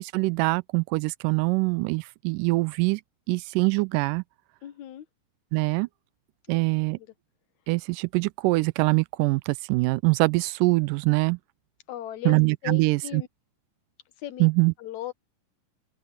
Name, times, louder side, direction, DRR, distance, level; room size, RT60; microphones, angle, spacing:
voice 1, 0.0-3.0 3.3-4.2 5.5-5.9 6.5-7.0 7.7-11.4 12.3-13.2 14.4-14.7, right 24 dB, 80° right, 2.0 m, -23 dB
voice 2, 4.6-5.1 6.5-6.6 7.0-7.1 11.9-13.3 14.2-14.5 14.8-15.1, left 13 dB, 65° left, 2.4 m, -37 dB
open air
omnidirectional pair, 4.0 m